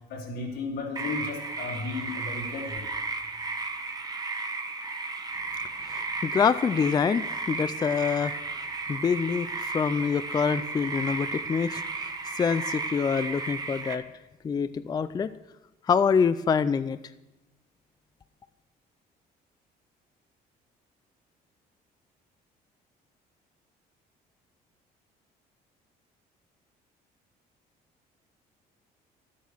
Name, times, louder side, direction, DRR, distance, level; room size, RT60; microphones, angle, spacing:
voice 1, 0.1-2.9, left 3 dB, 80° left, 0 dB, 3.2 m, -34 dB
sound 1, 1.0-14.0, right 3 dB, 20° right, 1.2 m, -34 dB
voice 2, 5.9-8.4 8.9-11.8 12.3-14.0 14.4-15.3 15.9-17.0, left 6 dB, 25° left, 13 dB, 0.4 m, -26 dB
11.0 x 8.3 x 6.3 m, 1.0 s
cardioid pair, 110°, 17 cm